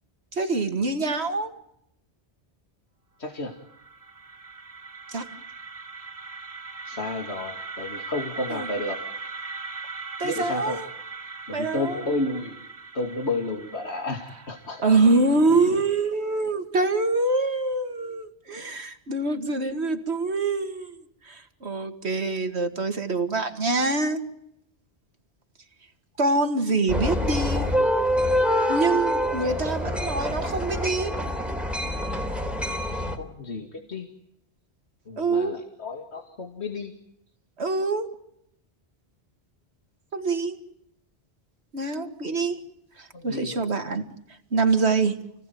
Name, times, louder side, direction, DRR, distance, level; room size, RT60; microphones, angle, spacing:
voice 1, 0.3-1.5 5.1-5.2 8.5-8.7 10.2-10.9 11.5-12.0 14.8-21.0 21.3-24.2 26.2-27.6 28.7-31.1 35.2-35.6 37.6-38.1 40.1-40.6 41.7-42.6 43.0-44.1 44.5-45.2, right 3 dB, 80° right, 6 dB, 2.5 m, -25 dB
voice 2, 3.2-3.5 6.8-9.0 10.2-10.8 11.5-12.6 12.9-15.0 33.1-34.1 35.1-36.9 43.1-43.6, left 2 dB, 85° left, 3 dB, 2.7 m, -31 dB
sound 1, 3.5-15.4, right 4 dB, 35° right, 1.3 m, -39 dB
sound 2, 26.9-33.2, equal, ahead, 3.6 m, -26 dB
29.5 x 18.0 x 9.4 m, 0.77 s
omnidirectional pair, 1.1 m